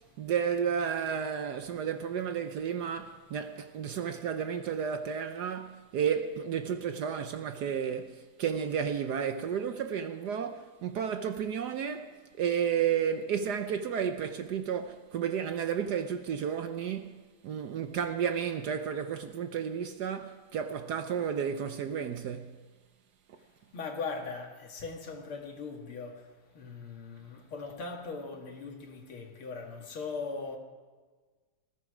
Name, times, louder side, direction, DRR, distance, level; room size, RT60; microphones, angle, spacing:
voice 1, 0.2-22.6, right 8 dB, 65° right, 1.1 m, -32 dB
voice 2, 23.7-30.6, left 4 dB, 85° left, 2.8 m, -40 dB
19.5 x 14.0 x 4.9 m
omnidirectional pair, 2.3 m